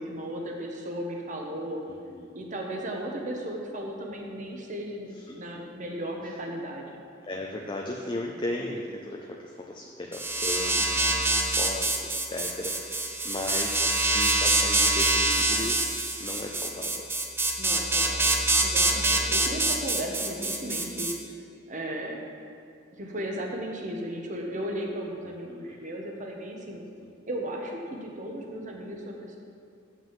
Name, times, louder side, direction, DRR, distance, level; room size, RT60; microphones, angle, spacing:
voice 1, 0.0-1.8 2.3-6.9 17.6-21.1 21.7-22.2 22.9-26.8 27.3-29.4, right 1 dB, 40° right, 1 dB, 1.2 m, -35 dB
voice 2, 7.2-15.8 16.2-17.1 18.9-19.0 25.2-25.8 27.0-27.1, left 1 dB, 25° left, 0 dB, 0.6 m, -36 dB
sound 1, 10.1-21.1, right 2 dB, 10° right, 0.7 m, -25 dB
7.6 x 6.0 x 7.4 m, 2.3 s
head